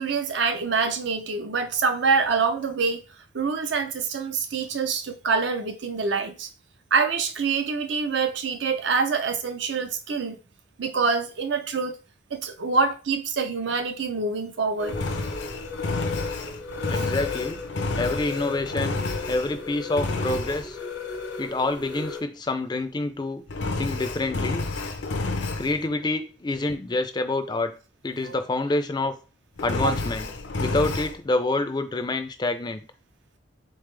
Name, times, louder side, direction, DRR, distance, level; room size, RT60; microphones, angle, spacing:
voice 1, 0.0-3.0 3.3-6.5 6.9-10.4 10.8-11.9 12.3-15.0 16.9-17.1 28.2-28.4 29.8-29.9, right 4 dB, 70° right, 0.6 m, -25 dB
sound 1, 14.8-22.2, left 4 dB, 90° left, 1.1 m, -35 dB
Engine, 14.9-19.6 19.9-20.7 23.5-25.8 29.6-31.1, left 3 dB, 70° left, 0.5 m, -30 dB
voice 2, 16.9-17.6 18.0-19.0 19.3-20.8 21.4-23.4 23.8-24.6 25.6-27.7 28.0-29.2 29.6-30.3 30.6-32.8, left 2 dB, 20° left, 0.4 m, -27 dB
4.0 x 3.3 x 3.2 m
head